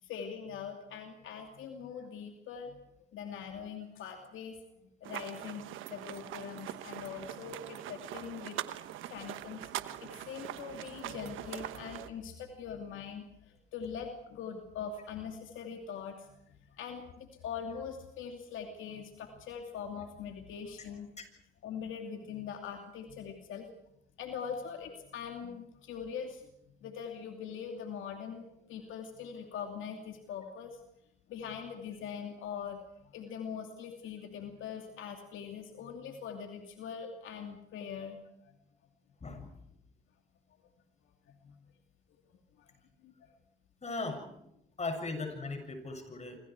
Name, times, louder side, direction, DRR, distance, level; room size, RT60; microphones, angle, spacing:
voice 1, 0.0-2.8 3.1-4.6 5.0-8.6 9.0-9.7 10.0-16.4 16.7-21.1 21.6-23.7 24.2-26.5 26.8-30.8 31.3-38.5 41.3-41.6 42.6-42.7 43.0-43.3, left 7 dB, 80° left, 3 dB, 2.8 m, -42 dB
sound 1, 5.0-12.1, right 13 dB, 90° right, 1.2 m, -42 dB
voice 2, 39.2-39.6 43.8-44.3 44.8-46.4, left 3 dB, 35° left, 5 dB, 7.3 m, -38 dB
26.5 x 26.5 x 4.8 m, 0.78 s
cardioid pair, 90°, 20 cm